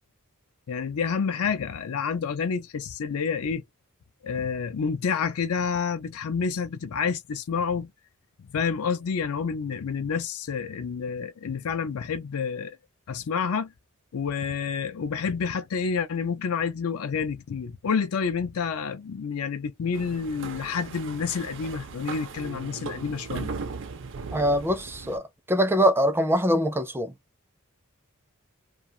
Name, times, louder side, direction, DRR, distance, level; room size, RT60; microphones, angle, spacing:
voice 1, 0.7-3.6 4.2-7.9 8.4-12.8 13.1-13.7 14.1-23.5, left 6 dB, 80° left, 0.5 m, -29 dB
sound 1, 19.9-25.2, right 4 dB, 60° right, 0.5 m, -38 dB
voice 2, 24.3-25.2 25.5-27.1, equal, 10° right, 0.5 m, -23 dB
2.4 x 2.3 x 2.7 m
head